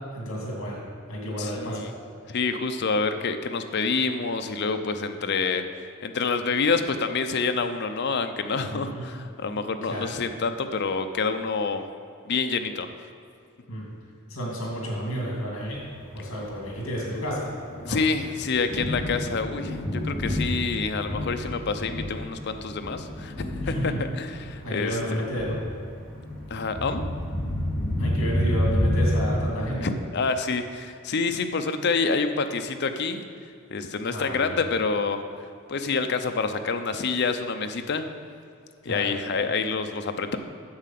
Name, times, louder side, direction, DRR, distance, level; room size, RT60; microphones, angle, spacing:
voice 1, 0.1-0.8 1.1-1.8 8.6-9.0 9.8-10.1 13.7-13.9 14.3-15.8 16.1-17.5 17.8-18.0 23.6-24.0 24.6-25.6 28.0-29.9 34.0-34.6 38.8-39.2, equal, 70° left, -2 dB, 2.6 m, -31 dB
voice 2, 1.4-1.9 2.3-11.8 12.3-12.9 17.8-25.2 26.5-27.0 29.8-33.2 33.7-35.2 35.7-38.1 38.9-40.4, left 4 dB, 50° left, 7 dB, 0.6 m, -27 dB
Thunder, 15.7-29.4, left 1 dB, 5° left, 2.7 m, -30 dB
8.7 x 7.5 x 5.9 m, 2.3 s
head